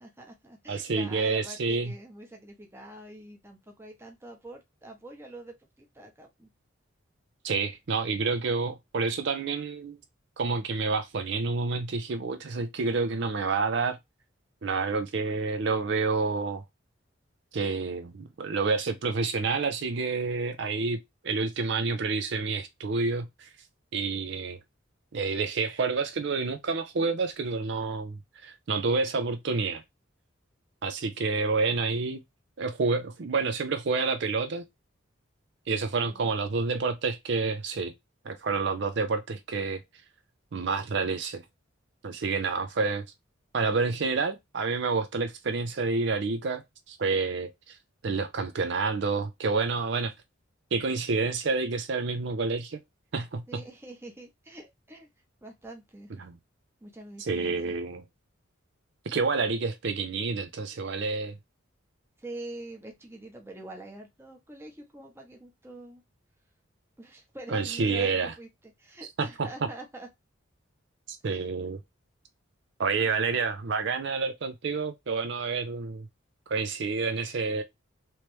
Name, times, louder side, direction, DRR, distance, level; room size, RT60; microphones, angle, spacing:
voice 1, 0.0-6.5 36.0-36.3 53.5-55.1 55.4-56.1 56.8-57.7 62.2-66.0 67.0-68.5 68.8-70.1 71.2-71.4, right 2 dB, 10° right, 0.8 m, -45 dB
voice 2, 0.7-1.9 7.4-10.0 10.4-14.0 14.6-16.6 17.5-23.5 23.9-24.6 25.1-29.8 30.8-32.2 32.6-34.7 35.7-37.9 38.2-39.8 40.5-41.4 42.0-43.1 43.5-47.8 48.0-50.1 50.7-52.8 53.1-53.6 56.2-56.4 57.2-58.0 59.1-61.4 67.5-68.3 69.2-69.5 71.1-71.8 72.8-76.1 76.5-77.6, right 4 dB, 60° right, 0.5 m, -29 dB
3.2 x 3.0 x 3.0 m
head